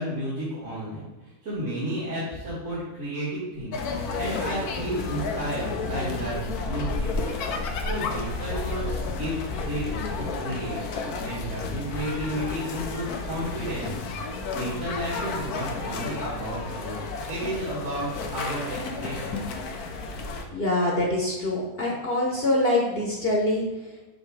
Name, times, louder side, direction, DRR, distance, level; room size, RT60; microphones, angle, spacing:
voice 1, 0.0-7.1 7.5-10.8 11.2-13.9 14.5-17.0 17.3-19.3, right 1 dB, 50° right, -10 dB, 2.2 m, -32 dB
sound 1, 3.7-20.4, left 4 dB, 80° left, 1.3 m, -32 dB
voice 2, 20.5-23.6, left 1 dB, 45° left, -2 dB, 1.1 m, -24 dB
7.6 x 3.0 x 4.8 m, 1.1 s
omnidirectional pair, 1.6 m